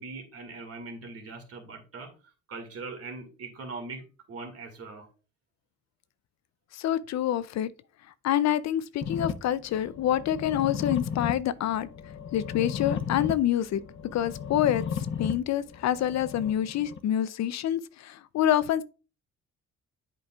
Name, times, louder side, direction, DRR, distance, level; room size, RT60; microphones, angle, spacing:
voice 1, 0.0-2.1 2.5-5.1, right 3 dB, 50° right, 2.1 m, -41 dB
voice 2, 6.7-7.7 8.2-11.9 12.3-13.8 14.1-18.8, left 11 dB, 60° left, 0.5 m, -27 dB
sound 1, 9.0-17.0, left 7 dB, 40° left, 0.9 m, -35 dB
7.9 x 5.2 x 2.3 m
cardioid pair, 90°, 30 cm